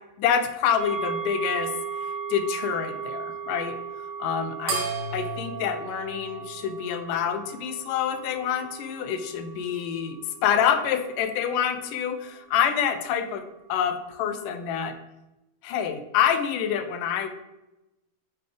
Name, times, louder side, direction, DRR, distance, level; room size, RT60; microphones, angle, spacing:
voice 1, 0.2-1.7 2.3-3.8 4.2-4.8 5.1-13.4 13.7-15.0 15.6-17.3, left 8 dB, 90° left, 9 dB, 2.2 m, -27 dB
sound 1, 0.8-12.4 12.8-12.9, right 6 dB, 45° right, 2.0 m, -37 dB
sound 2, 4.7-7.5, right 4 dB, 80° right, 2.8 m, -34 dB
8.1 x 5.0 x 3.3 m, 0.96 s
omnidirectional pair, 3.7 m